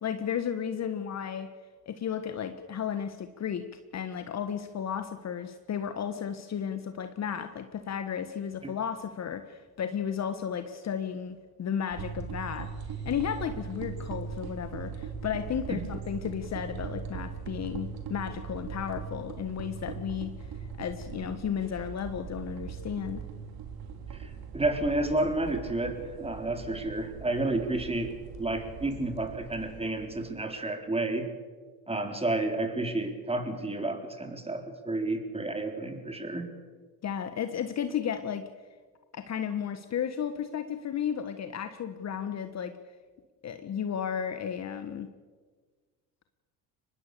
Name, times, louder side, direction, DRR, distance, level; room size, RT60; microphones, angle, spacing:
voice 1, 0.0-1.5 1.9-3.6 3.9-12.7 13.0-20.3 20.8-23.2 37.0-38.5 39.1-42.7 43.4-45.1, left 8 dB, 35° left, 9 dB, 1.5 m, -33 dB
sound 1, 11.9-30.4, right 6 dB, 50° right, 3.4 m, -40 dB
voice 2, 24.2-28.1 28.4-31.3 31.9-36.5, right 2 dB, 15° right, 5 dB, 4.0 m, -31 dB
24.0 x 20.5 x 6.9 m, 1.5 s
hypercardioid pair, 75°, 45 cm